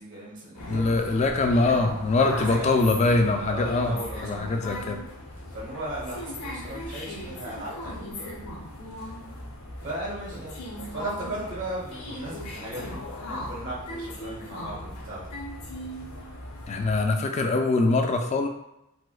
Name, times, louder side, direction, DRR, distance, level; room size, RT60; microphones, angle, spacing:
voice 1, 0.0-1.2 2.2-2.9 3.4-4.6 5.5-8.1 9.8-15.2, right 1 dB, 55° right, -7 dB, 1.2 m, -37 dB
sound 1, 0.5-17.1, left 1 dB, 80° left, 0.8 m, -38 dB
voice 2, 0.7-3.9 4.2-5.0 16.7-18.5, left 3 dB, 30° left, 4 dB, 0.3 m, -23 dB
4.3 x 2.1 x 2.3 m, 0.84 s
head